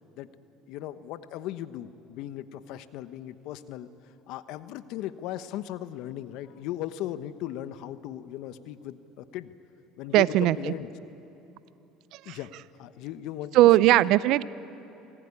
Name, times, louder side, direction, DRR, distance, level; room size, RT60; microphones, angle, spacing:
voice 1, 0.7-3.9 4.3-9.5 10.0-10.9 12.2-12.5 12.8-13.6 13.9-14.0, left 12 dB, 70° left, 13 dB, 1.1 m, -37 dB
voice 2, 10.1-10.7 12.1-12.4 13.5-14.4, right 16 dB, 65° right, 18 dB, 0.6 m, -20 dB
26.0 x 18.5 x 9.8 m, 3.0 s
supercardioid pair, 90°, 0 cm